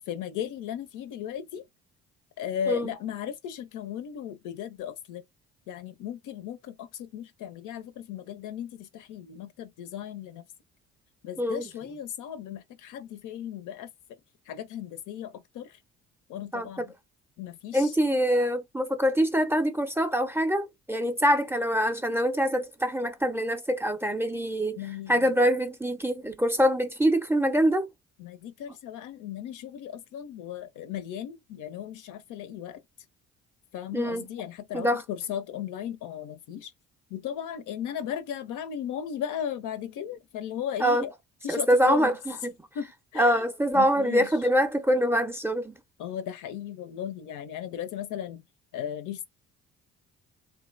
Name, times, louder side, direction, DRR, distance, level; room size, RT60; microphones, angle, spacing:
voice 1, 0.1-1.7 2.4-5.2 5.7-10.4 11.2-13.9 14.5-15.8 16.3-16.9 17.4-17.9 24.8-25.3 28.2-32.8 33.7-36.7 37.1-41.1 41.4-42.2 42.7-43.5 43.7-44.3 46.0-48.4 48.7-49.2, left 9 dB, 60° left, 0.5 m, -36 dB
voice 2, 11.4-11.7 16.5-16.8 17.7-24.8 25.1-27.9 33.9-34.3 34.7-35.0 40.8-41.1 41.5-42.5 43.2-45.8, equal, 5° right, 0.5 m, -24 dB
2.8 x 2.2 x 2.5 m
hypercardioid pair, 50°, 35 cm